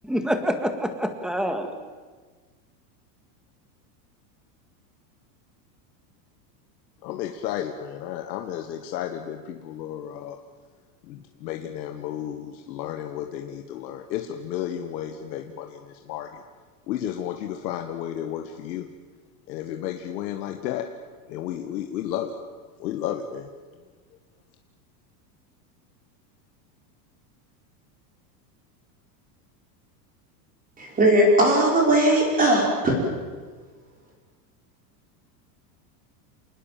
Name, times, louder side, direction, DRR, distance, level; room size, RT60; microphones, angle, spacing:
voice 1, 0.0-1.7, equal, ahead, 7 dB, 1.7 m, -26 dB
voice 2, 7.0-10.4 11.1-16.4 16.9-18.9 19.5-20.9 21.3-22.3 22.8-23.5, left 10 dB, 85° left, 5 dB, 1.9 m, -32 dB
voice 3, 30.8-33.0, right 1 dB, 15° right, -1 dB, 5.1 m, -19 dB
28.0 x 20.0 x 7.6 m, 1.5 s
supercardioid pair, 160°, 50 cm